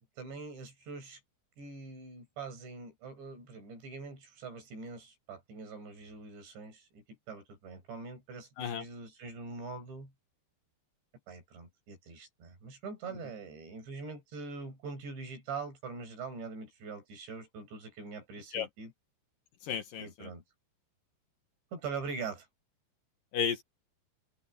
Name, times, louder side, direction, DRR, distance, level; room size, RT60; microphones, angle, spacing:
voice 1, 0.2-1.2 1.6-10.1 11.3-18.9 20.0-20.4 21.7-22.5, right 4 dB, 75° right, 9.3 m, -43 dB
voice 2, 19.6-20.3 23.3-23.6, left 7 dB, 60° left, 2.9 m, -33 dB
omnidirectional pair, 5.1 m